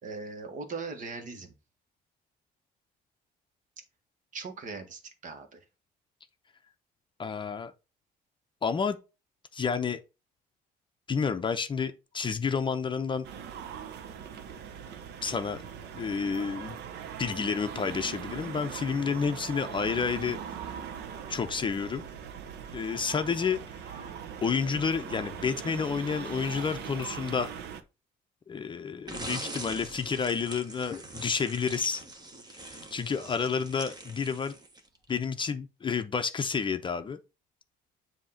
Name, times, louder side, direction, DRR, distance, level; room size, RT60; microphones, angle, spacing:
voice 1, 0.0-1.5 4.3-5.6, right 4 dB, 50° right, 1.6 m, -39 dB
voice 2, 7.2-7.7 8.6-9.0 9.5-10.0 11.1-13.3 15.2-15.6 15.9-16.8 17.2-20.4 21.3-22.1 22.7-23.6 23.9-24.0 24.4-27.5 28.5-32.0 32.5-34.5 35.1-37.2, left 6 dB, 30° left, 0.6 m, -30 dB
sound 1, 13.2-27.8, right 8 dB, 75° right, 0.9 m, -41 dB
sound 2, 29.1-35.0, right 2 dB, 25° right, 1.4 m, -43 dB
7.4 x 2.9 x 5.7 m
cardioid pair, 110°, 17 cm